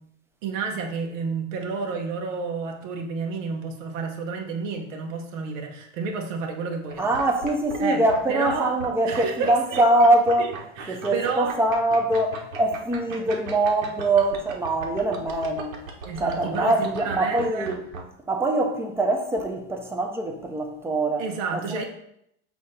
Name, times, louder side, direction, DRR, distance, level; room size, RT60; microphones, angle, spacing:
voice 1, 0.4-7.1 7.8-8.0 8.3-8.8 9.0-9.8 10.4-11.6 16.0-17.7 21.2-21.8, right 4 dB, 70° right, 1.3 m, -30 dB
sound 1, 6.9-7.8 8.1-8.2 8.4-18.0, right 4 dB, 90° right, 1.4 m, -37 dB
voice 2, 7.0-10.5 10.9-15.8 16.2-17.8 18.3-21.2 21.5-21.8, right 2 dB, 5° right, 0.6 m, -23 dB
6.1 x 2.9 x 5.5 m
supercardioid pair, 140°, 40 cm